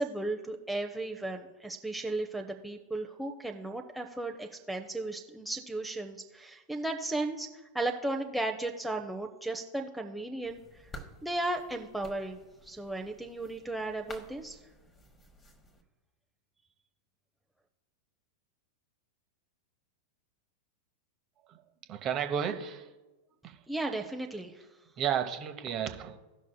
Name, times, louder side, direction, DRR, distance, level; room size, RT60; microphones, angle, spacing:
voice 1, 0.0-7.5 7.7-10.6 11.2-14.6 23.7-24.7, right 2 dB, ahead, 1 dB, 0.7 m, -35 dB
sound 1, 10.4-15.8, equal, 20° left, 1.2 m, -52 dB
voice 2, 21.9-22.9 23.4-23.6 25.0-26.2, right 8 dB, 35° right, 6 dB, 0.9 m, -32 dB
17.5 x 6.0 x 2.3 m, 1.1 s
figure-of-eight pair, 90°, 0 cm